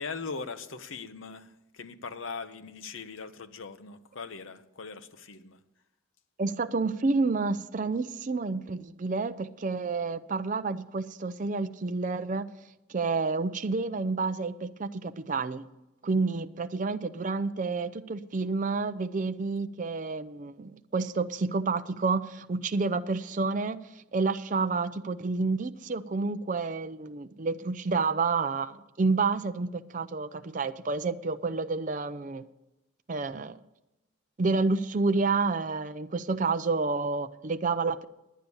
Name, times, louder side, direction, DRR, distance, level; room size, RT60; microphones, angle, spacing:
voice 1, 0.0-5.6, left 4 dB, 75° left, 0.8 m, -40 dB
voice 2, 6.4-12.5 12.9-15.7 16.0-23.8 24.1-32.4 33.1-33.6 34.4-38.0, right 4 dB, 40° right, 0.4 m, -29 dB
10.0 x 9.4 x 7.0 m
head